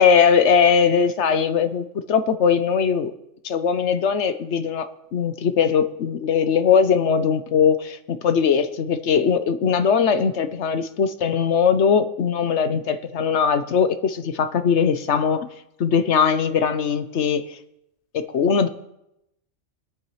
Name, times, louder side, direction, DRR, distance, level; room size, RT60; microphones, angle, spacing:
voice 1, 0.0-3.1 3.4-15.5 15.8-17.6 18.1-18.7, left 6 dB, 70° left, 10 dB, 1.1 m, -20 dB
24.0 x 8.8 x 3.2 m, 0.84 s
omnidirectional pair, 1.2 m